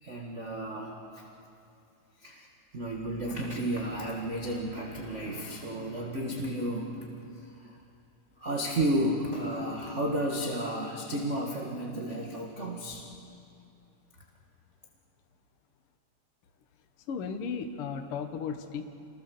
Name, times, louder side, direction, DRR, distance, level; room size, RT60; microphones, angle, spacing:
voice 1, 0.0-1.2 2.2-2.5 2.7-7.8 8.4-13.1, right 1 dB, 30° right, -1 dB, 1.6 m, -32 dB
voice 2, 17.1-18.9, left 6 dB, 55° left, 6 dB, 1.9 m, -35 dB
27.5 x 20.5 x 7.0 m, 2.6 s
omnidirectional pair, 3.6 m